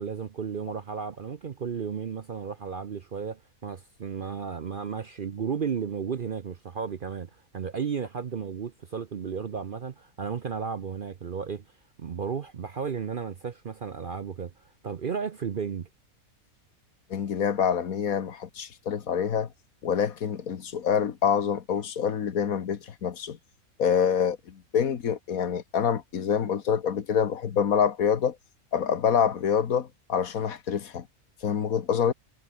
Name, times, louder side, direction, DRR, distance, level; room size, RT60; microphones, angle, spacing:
voice 1, 0.0-11.6 12.0-15.9, right 6 dB, 45° right, 0.7 m, -34 dB
voice 2, 17.1-19.5 19.8-23.4 23.8-28.4 28.7-31.1 31.4-32.1, left 7 dB, 70° left, 1.7 m, -26 dB
omnidirectional pair, 1.6 m